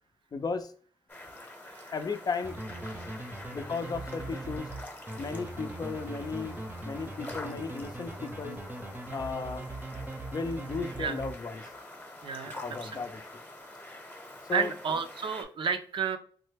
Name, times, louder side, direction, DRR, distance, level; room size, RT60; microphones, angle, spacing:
voice 1, 0.3-0.7 1.9-2.6 3.5-4.7 5.2-6.6 6.8-8.6 9.1-9.7 10.3-11.7 12.5-13.2 14.5-14.7, left 4 dB, 45° left, 0.5 m, -35 dB
sound 1, 1.1-15.4, left 1 dB, 20° left, 0.9 m, -46 dB
sound 2, 2.4-11.8, right 2 dB, 20° right, 0.7 m, -40 dB
voice 2, 12.2-13.0 14.5-16.2, right 6 dB, 65° right, 0.5 m, -32 dB
3.2 x 2.1 x 3.3 m
cardioid pair, 70°, 9 cm